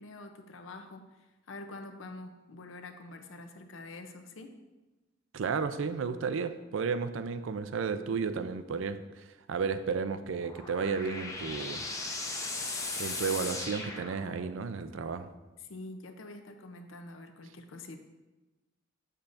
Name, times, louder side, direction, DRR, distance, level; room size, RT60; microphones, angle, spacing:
voice 1, 0.0-4.5 15.6-18.0, left 2 dB, 80° left, 6 dB, 0.7 m, -46 dB
voice 2, 5.3-11.8 13.0-15.3, right 5 dB, 75° right, 11 dB, 0.4 m, -33 dB
sound 1, 10.1-14.7, left 3 dB, 15° left, 0.6 m, -38 dB
7.0 x 6.7 x 2.6 m, 1.1 s
head